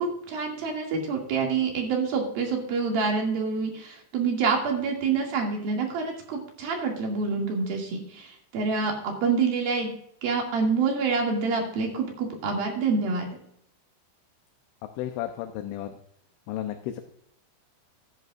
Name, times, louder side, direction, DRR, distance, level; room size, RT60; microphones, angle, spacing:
voice 1, 0.0-9.9 10.2-13.3, right 4 dB, 55° right, 0 dB, 3.8 m, -27 dB
voice 2, 15.0-15.9 16.5-17.0, left 12 dB, 85° left, 6 dB, 3.2 m, -33 dB
15.5 x 11.0 x 2.5 m, 0.70 s
omnidirectional pair, 5.3 m